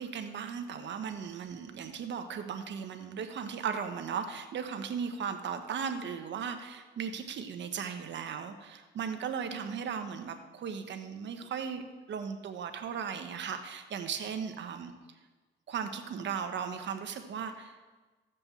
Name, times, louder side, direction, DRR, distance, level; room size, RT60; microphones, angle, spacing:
voice 1, 0.0-14.9 15.7-17.8, right 7 dB, 65° right, 7 dB, 1.2 m, -37 dB
15.0 x 5.3 x 7.0 m, 1.3 s
cardioid pair, 90°, 20 cm